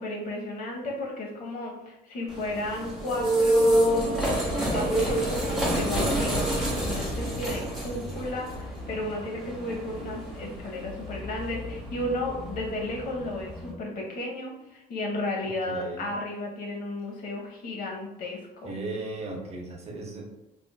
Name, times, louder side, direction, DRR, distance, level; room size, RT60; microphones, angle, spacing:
voice 1, 0.0-18.7, left 1 dB, 55° left, -1 dB, 0.9 m, -33 dB
sound 1, 2.3-13.7, right 1 dB, ahead, 1.0 m, -28 dB
voice 2, 15.4-16.1 18.6-20.3, right 2 dB, 40° right, 0 dB, 0.7 m, -37 dB
3.5 x 2.4 x 2.3 m, 0.92 s
cardioid pair, 110°, 17 cm